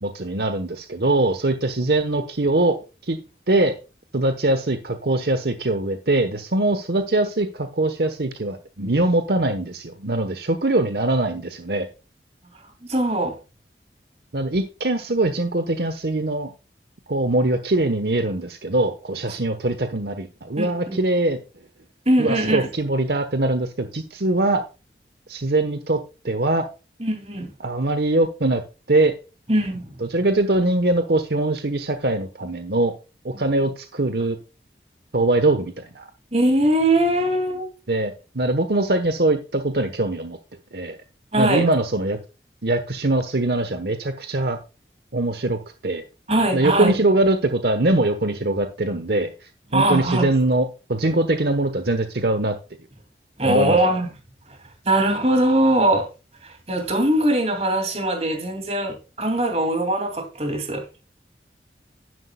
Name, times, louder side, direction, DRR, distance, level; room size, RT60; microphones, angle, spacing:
voice 1, 0.0-2.8 3.0-3.2 3.5-3.7 4.1-11.9 14.3-16.5 17.1-21.4 22.2-24.6 25.3-26.0 26.2-26.7 27.6-28.6 28.9-29.1 30.0-32.9 33.2-34.4 35.1-36.1 37.9-40.4 40.7-41.0 41.4-42.2 42.6-44.6 45.1-46.0 46.5-49.3 49.7-52.5 53.4-53.8, right 2 dB, 70° right, 1.1 m, -22 dB
voice 2, 12.9-13.3 20.6-21.0 22.1-22.7 27.0-27.5 29.5-29.9 33.3-33.4 36.3-37.7 41.3-41.7 46.3-46.9 49.7-50.3 53.4-54.1 54.8-56.1 56.4-60.8, right 1 dB, 35° right, 2.5 m, -21 dB
11.5 x 11.0 x 2.3 m
head